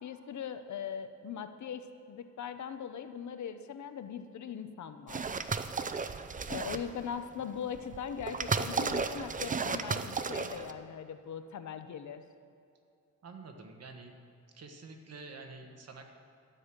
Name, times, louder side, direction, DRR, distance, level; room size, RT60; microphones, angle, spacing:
voice 1, 0.0-5.3 6.5-12.2, left 7 dB, 70° left, 9 dB, 0.8 m, -40 dB
sound 1, 5.1-7.0 7.7-10.7, right 5 dB, 25° right, 0.5 m, -34 dB
voice 2, 13.2-14.1 14.5-16.1, right 3 dB, 55° right, 4 dB, 1.4 m, -48 dB
12.0 x 6.3 x 9.0 m, 2.6 s
wide cardioid pair, 130°, 30 cm